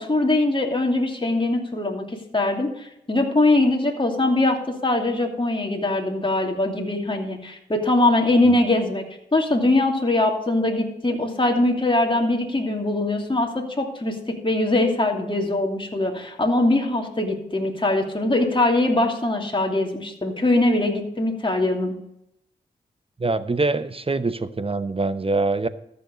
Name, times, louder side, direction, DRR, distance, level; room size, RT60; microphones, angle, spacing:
voice 1, 0.0-9.0 9.3-14.1 14.4-22.0, left 2 dB, 25° left, 1 dB, 2.6 m, -22 dB
voice 2, 23.2-25.7, right 3 dB, 30° right, 13 dB, 0.9 m, -24 dB
13.5 x 6.8 x 5.1 m, 0.78 s
cardioid pair, 40°, 19 cm